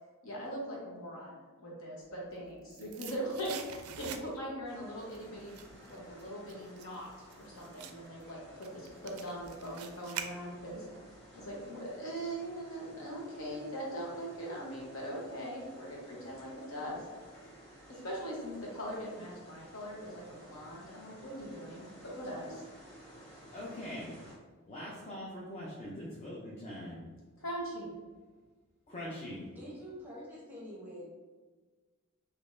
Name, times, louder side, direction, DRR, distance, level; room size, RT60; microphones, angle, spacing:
voice 1, 0.2-1.3 1.6-5.5 5.9-10.8 11.3-17.0 17.8-22.6 27.4-27.9, equal, 65° left, -4 dB, 1.1 m, -41 dB
sound 1, 2.2-4.6 5.0-10.9 11.2-11.3, right 8 dB, 85° right, 0.4 m, -46 dB
sound 2, 4.6-24.4, right 1 dB, 15° left, 1.3 m, -54 dB
voice 2, 23.5-24.1 24.7-27.0 28.9-29.5, left 1 dB, 30° left, -5 dB, 0.6 m, -42 dB
voice 3, 29.1-31.1, equal, 10° right, -6 dB, 0.9 m, -47 dB
3.7 x 2.9 x 2.5 m, 1.4 s
head